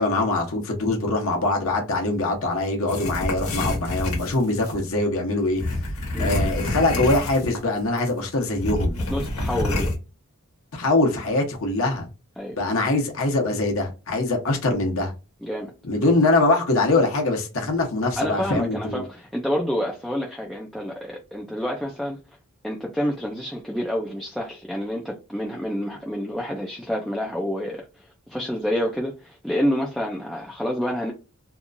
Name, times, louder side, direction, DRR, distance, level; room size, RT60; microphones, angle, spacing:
voice 1, 0.0-5.6 6.2-9.0 10.7-12.1 12.5-15.1 15.8-19.0, left 2 dB, 65° left, 0.9 m, -23 dB
sound 1, 2.9-4.8 5.6-7.7 8.0-8.1 8.5-10.0, left 2 dB, 90° left, 1.1 m, -27 dB
voice 2, 9.1-9.9 12.4-12.6 15.4-15.7 18.2-22.2 22.6-31.1, equal, ahead, 0.3 m, -28 dB
2.8 x 2.3 x 2.5 m
head